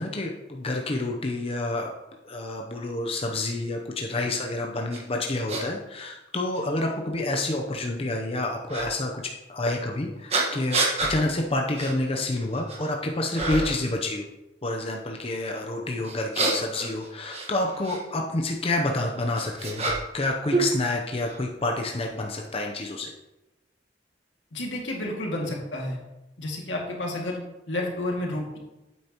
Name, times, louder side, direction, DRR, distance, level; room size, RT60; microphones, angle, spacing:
voice 1, 0.0-1.9 2.2-14.3 14.6-19.8 20.1-23.1, left 2 dB, 30° left, 1 dB, 0.7 m, -28 dB
sound 1, 4.9-5.0 5.5-5.6 6.5-6.6 8.7-8.9 10.3-11.2 11.8-11.9 12.4-12.9 13.3-13.8 16.0-18.0 19.0-20.2 20.5-21.4, right 3 dB, 35° right, 1.5 m, -28 dB
voice 2, 24.5-26.0 26.4-27.4 27.7-28.6, left 1 dB, 80° left, -1 dB, 2.2 m, -30 dB
9.0 x 8.5 x 3.0 m, 0.99 s
head